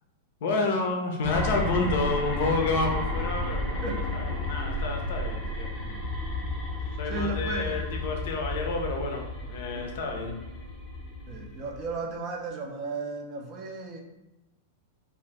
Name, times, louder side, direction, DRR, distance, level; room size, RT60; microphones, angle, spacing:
voice 1, 0.4-3.8 4.1-5.7 7.0-10.4, left 3 dB, 55° left, 3 dB, 0.5 m, -29 dB
Organ, 0.9-11.6, right 2 dB, 85° right, 0.6 m, -55 dB
sound 1, 1.2-12.0, left 2 dB, 10° left, 0.8 m, -32 dB
voice 2, 6.8-7.8 9.7-9.9 11.3-14.0, right 3 dB, 35° right, 1 dB, 0.5 m, -35 dB
2.4 x 2.4 x 3.2 m, 0.93 s
figure-of-eight pair, 95°, 0 cm